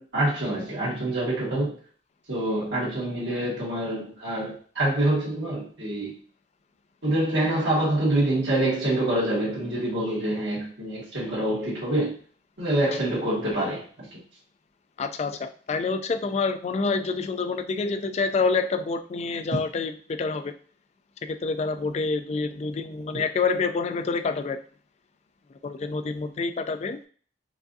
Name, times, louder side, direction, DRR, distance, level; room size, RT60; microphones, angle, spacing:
voice 1, 0.0-1.7 2.3-6.2 7.0-12.1 12.6-14.1, right 1 dB, 85° right, -8 dB, 1.6 m, -26 dB
voice 2, 15.0-20.5 21.2-24.6 25.6-27.0, left 4 dB, 40° left, 9 dB, 0.3 m, -27 dB
4.6 x 2.5 x 2.6 m, 0.43 s
head